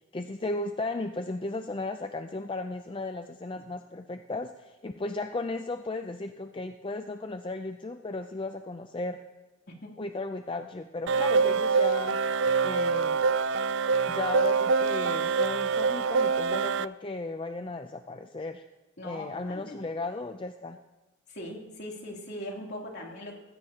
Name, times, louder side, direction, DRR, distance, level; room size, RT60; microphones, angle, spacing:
voice 1, 0.1-9.2 10.0-12.2 12.6-13.3 14.1-18.6 19.0-20.8, left 2 dB, 25° left, 7 dB, 0.4 m, -35 dB
voice 2, 9.7-10.0 11.4-11.6 19.0-19.8 21.3-23.4, left 1 dB, 55° left, -1 dB, 2.9 m, -40 dB
sound 1, 11.1-16.9, right 5 dB, 60° right, 0.3 m, -25 dB
19.5 x 16.0 x 2.9 m, 1.1 s
head